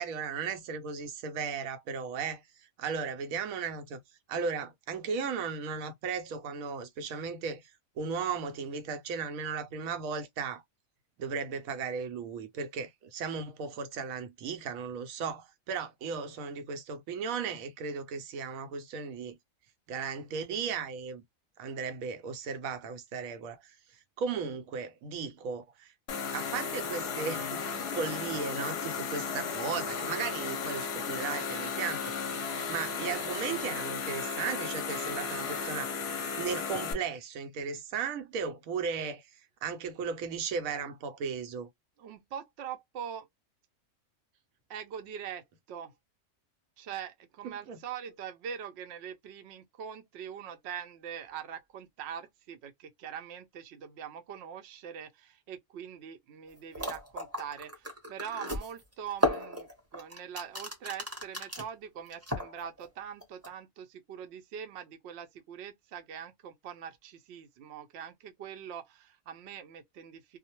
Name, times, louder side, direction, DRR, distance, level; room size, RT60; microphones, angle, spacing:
voice 1, 0.0-2.4 2.8-4.0 4.3-7.6 8.0-10.6 11.2-19.3 19.9-21.2 21.6-23.7 24.2-25.9 26.3-27.6 27.9-35.9 36.3-39.3 39.6-41.7 47.4-47.8, right 6 dB, 85° right, 1.0 m, -36 dB
sound 1, 26.1-36.9, left 5 dB, 60° left, 0.8 m, -35 dB
voice 2, 42.0-43.3 44.7-45.9 46.8-70.4, right 8 dB, 65° right, 0.7 m, -43 dB
sound 2, 56.5-56.6 56.7-61.7 62.1-62.9 63.2-63.5, equal, 15° right, 0.7 m, -34 dB
2.4 x 2.1 x 2.8 m
omnidirectional pair, 1.4 m